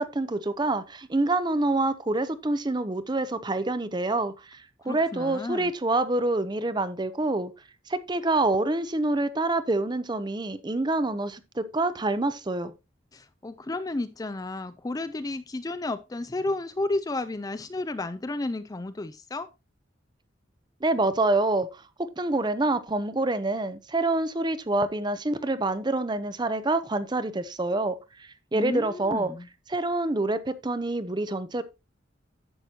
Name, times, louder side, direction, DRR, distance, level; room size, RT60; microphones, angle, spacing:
voice 1, 0.0-7.5 7.9-12.7 20.8-21.8 22.2-29.3 29.7-31.6, right 2 dB, 20° right, 0.6 m, -27 dB
voice 2, 4.8-5.7 13.1-19.5 28.5-29.5, left 2 dB, 20° left, 0.4 m, -32 dB
11.0 x 7.7 x 2.8 m
head